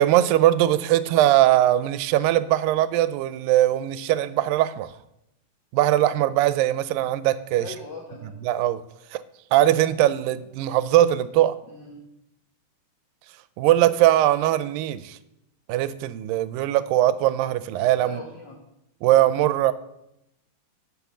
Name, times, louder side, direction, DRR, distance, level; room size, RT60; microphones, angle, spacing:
voice 1, 0.0-4.9 5.7-7.7 8.4-8.8 9.1-9.2 9.5-11.6 13.6-15.2 15.7-18.2 19.0-19.7, right 13 dB, 90° right, 15 dB, 2.3 m, -20 dB
voice 2, 7.5-8.4 11.7-12.0 18.0-18.6, left 3 dB, 70° left, 0 dB, 1.0 m, -40 dB
7.8 x 5.9 x 7.3 m, 0.84 s
omnidirectional pair, 3.9 m